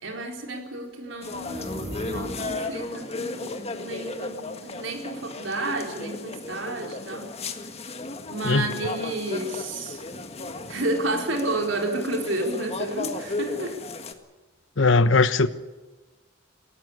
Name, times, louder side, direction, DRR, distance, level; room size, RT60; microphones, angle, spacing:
voice 1, 0.0-7.3 8.3-10.0 10.7-13.8, right 2 dB, 80° right, 3 dB, 4.3 m, -31 dB
sound 1, 1.2-14.1, left 3 dB, 35° left, 1.8 m, -35 dB
sound 2, 1.3-2.8, equal, 20° right, 6.8 m, -37 dB
voice 2, 14.8-15.5, left 3 dB, 80° left, 13 dB, 1.2 m, -19 dB
19.0 x 17.5 x 9.9 m, 1.2 s
head